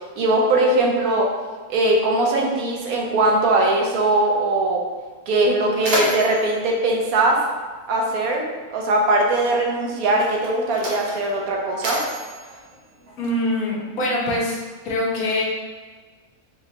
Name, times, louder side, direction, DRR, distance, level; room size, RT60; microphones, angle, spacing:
voice 1, 0.2-1.3 1.7-4.8 5.3-7.4 7.9-12.0, right 2 dB, 75° right, 0 dB, 1.1 m, -20 dB
Mechanisms, 4.9-5.0 5.3-8.1 9.1-9.2 10.0-13.6, right 1 dB, 50° right, 0.8 m, -30 dB
voice 2, 13.2-14.6 14.8-15.4, left 1 dB, 75° left, -3 dB, 1.3 m, -23 dB
4.7 x 2.3 x 2.8 m, 1.4 s
omnidirectional pair, 1.6 m